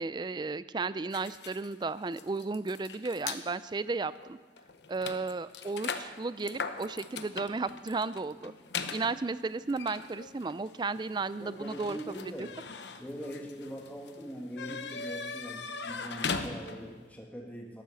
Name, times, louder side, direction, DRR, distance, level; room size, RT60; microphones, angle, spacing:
voice 1, 0.0-4.4 4.9-8.5 8.9-12.0 12.4-12.5, right 3 dB, 25° right, 16 dB, 0.4 m, -34 dB
sound 1, 1.1-3.4 4.2-4.3 4.6-17.0, left 5 dB, 85° left, 0.9 m, -40 dB
voice 2, 11.4-12.5 13.0-17.8, equal, 10° left, -1 dB, 1.4 m, -42 dB
12.5 x 12.0 x 7.0 m, 1.4 s
head